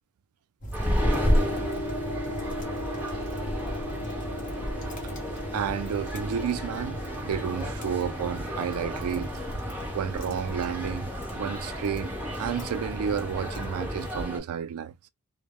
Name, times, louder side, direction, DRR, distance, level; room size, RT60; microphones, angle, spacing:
sound 1, 0.6-14.3, right 1 dB, 35° left, 0.8 m, -38 dB
sound 2, 0.7-14.4, equal, 5° right, 0.8 m, -32 dB
sound 3, 1.0-10.5, left 1 dB, 85° left, 0.9 m, -38 dB
voice 1, 4.6-5.1 5.5-9.3 9.7-15.0, right 7 dB, 85° right, 0.3 m, -32 dB
2.2 x 2.0 x 3.0 m
head